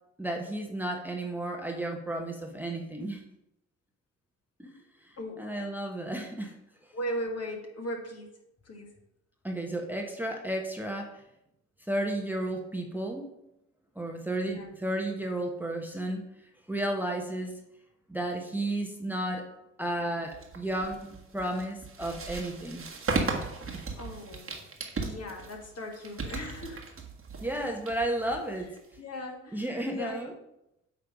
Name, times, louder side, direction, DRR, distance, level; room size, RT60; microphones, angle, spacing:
voice 1, 0.2-3.2 4.6-4.7 5.4-6.5 9.4-11.1 11.9-13.3 13.9-16.2 16.7-17.5 18.1-19.5 19.8-22.8 23.7-23.8 27.4-28.7 29.5-30.3, right 1 dB, 5° right, 2 dB, 1.2 m, -33 dB
voice 2, 5.2-5.5 6.9-8.9 14.5-14.7 23.5-24.6 24.9-27.0 29.0-30.2, equal, 40° left, 2 dB, 1.8 m, -38 dB
sound 1, 20.3-29.0, right 3 dB, 35° right, 1.5 m, -36 dB
8.7 x 3.4 x 5.2 m, 0.83 s
hypercardioid pair, 45°, 37 cm